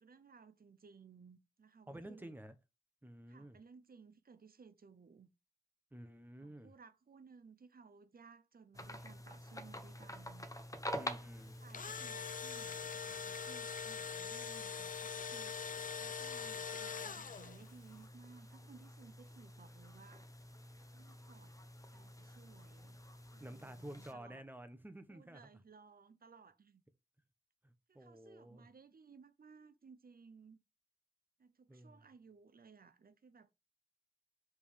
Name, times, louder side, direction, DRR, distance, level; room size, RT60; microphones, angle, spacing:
voice 1, 0.0-2.4 3.3-5.3 6.4-10.5 11.2-20.6 20.9-21.5 21.9-23.0 23.3-24.5 25.1-26.8 27.9-30.6 31.4-33.5, right 5 dB, 80° right, 0.5 m, -60 dB
voice 2, 1.9-2.5 3.0-3.6 5.9-6.7 10.9-11.6 23.4-25.5 27.6-28.7 31.7-32.1, right 1 dB, 10° right, 0.9 m, -51 dB
sound 1, 8.7-24.1, left 1 dB, 20° left, 0.8 m, -49 dB
Engine / Drill, 11.5-17.7, left 6 dB, 60° left, 0.4 m, -43 dB
5.2 x 3.6 x 5.0 m
wide cardioid pair, 65°, 15 cm